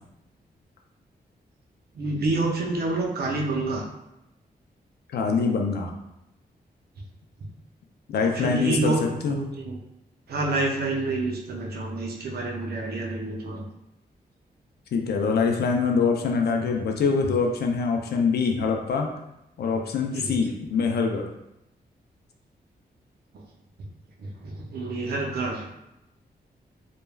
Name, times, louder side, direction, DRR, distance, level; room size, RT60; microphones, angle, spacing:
voice 1, 1.9-3.8 8.2-9.8 10.3-13.6 20.1-20.4 23.3-23.4 24.2-25.6, right 2 dB, 70° right, 0 dB, 0.5 m, -28 dB
voice 2, 5.1-5.9 8.1-8.9 9.2-9.4 14.9-19.1 19.6-21.3, left 5 dB, 75° left, 2 dB, 0.4 m, -24 dB
3.2 x 2.2 x 2.2 m, 0.87 s
wide cardioid pair, 110°, 17 cm